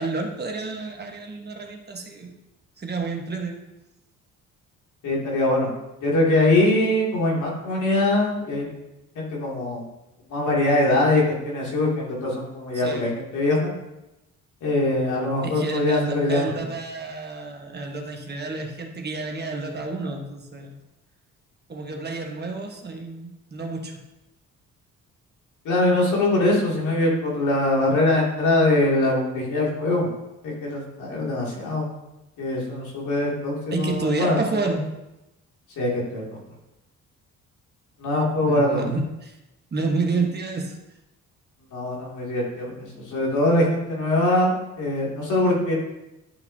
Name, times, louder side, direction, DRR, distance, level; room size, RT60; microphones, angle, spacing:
voice 1, 0.0-2.3 2.8-3.6 12.7-13.1 15.4-20.8 21.7-24.0 33.7-34.8 38.4-39.4 39.7-40.8, right 3 dB, 35° right, 2 dB, 1.3 m, -29 dB
voice 2, 5.0-5.7 6.0-8.7 9.2-9.8 10.3-13.7 14.6-16.5 25.6-30.1 30.4-31.9 32.4-34.4 35.8-36.2 38.0-38.9 41.7-44.5 44.8-45.7, left 2 dB, 75° left, -3 dB, 2.5 m, -22 dB
11.5 x 5.8 x 2.7 m, 0.95 s
cardioid pair, 90°, 30 cm